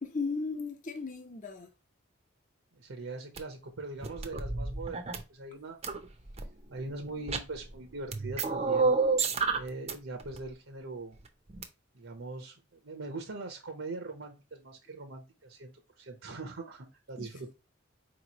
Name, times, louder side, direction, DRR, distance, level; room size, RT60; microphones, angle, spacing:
voice 1, 0.0-1.7 17.2-17.3, left 4 dB, 40° left, 0.9 m, -36 dB
voice 2, 2.7-5.8 6.7-8.9 9.5-11.2 11.9-17.5, right 3 dB, 75° right, 0.8 m, -42 dB
sound 1, 3.4-3.5 4.0-5.2 5.8-6.4 7.2-7.7 8.1-9.9 10.2-10.4 11.5-11.6, right 4 dB, 30° right, 0.6 m, -29 dB
4.5 x 3.0 x 2.9 m
head